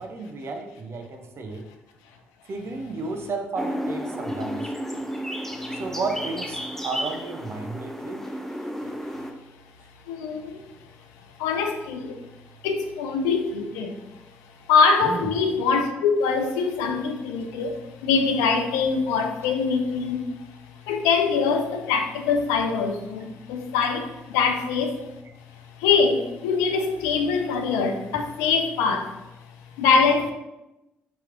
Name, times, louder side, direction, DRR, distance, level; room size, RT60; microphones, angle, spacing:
voice 1, 0.0-1.7 2.5-4.7 5.7-8.3 15.0-15.3, right 3 dB, 50° right, 3 dB, 0.5 m, -32 dB
sound 1, 3.6-9.3, equal, 5° left, 0.4 m, -32 dB
voice 2, 10.1-10.6 11.4-12.2 12.6-14.1 14.7-25.1 25.8-29.2 29.8-30.3, left 5 dB, 75° left, 5 dB, 0.3 m, -23 dB
3.0 x 2.9 x 2.4 m, 0.96 s
hypercardioid pair, 45°, 6 cm